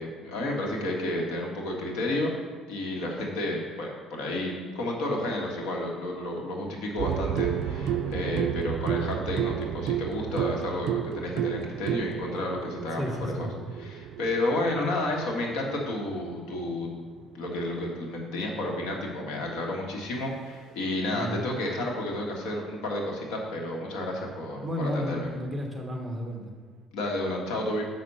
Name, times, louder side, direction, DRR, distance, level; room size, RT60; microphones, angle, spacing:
voice 1, 0.0-2.3 2.7-13.1 13.4-13.5 13.8-16.9 17.3-25.3 26.9-27.8, left 1 dB, 85° left, 0 dB, 1.6 m, -31 dB
sound 1, 7.0-18.8 20.2-20.3, right 10 dB, 60° right, 0.4 m, -32 dB
voice 2, 13.0-13.5 21.1-21.4 24.6-26.5, equal, 10° right, 1 dB, 1.3 m, -32 dB
6.4 x 5.9 x 5.5 m, 1.5 s
cardioid pair, 125°, 0 cm